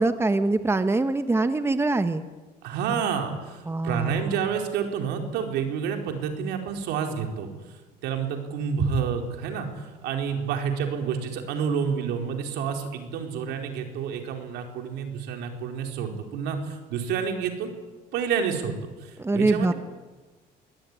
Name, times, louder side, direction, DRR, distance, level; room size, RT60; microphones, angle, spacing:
voice 1, 0.0-2.2 3.7-4.4 19.2-19.7, right 2 dB, 15° right, 10 dB, 1.4 m, -24 dB
voice 2, 2.6-7.8 8.0-17.7 18.1-19.7, right 6 dB, 90° right, 4 dB, 4.4 m, -29 dB
23.5 x 18.5 x 9.9 m, 1.2 s
cardioid pair, 110°, 17 cm